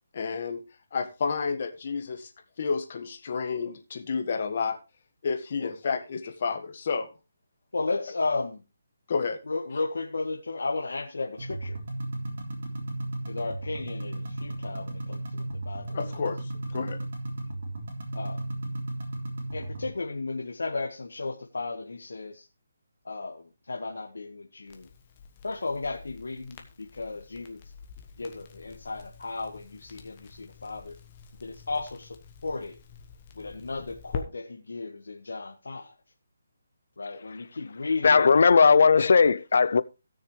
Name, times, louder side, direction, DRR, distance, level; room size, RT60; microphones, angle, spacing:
voice 1, 0.1-0.6 0.9-2.3 2.6-4.8 5.2-7.1 9.1-9.4 15.9-17.0, left 5 dB, 45° left, 1.6 m, -30 dB
voice 2, 7.7-8.6 9.5-11.8 13.3-16.0 18.1-18.4 19.5-22.4 23.0-24.9 25.4-26.6 26.9-27.6 28.2-30.9 31.4-32.1 32.4-32.7 33.4-35.9 37.0-38.2, left 3 dB, 90° left, 1.6 m, -34 dB
sound 1, 11.4-19.9, right 1 dB, 50° right, 3.4 m, -35 dB
Crackle, 24.7-34.2, left 6 dB, 25° left, 1.3 m, -45 dB
voice 3, 38.0-39.8, left 5 dB, 60° left, 0.5 m, -18 dB
17.0 x 6.5 x 3.3 m
hypercardioid pair, 170°, 0 cm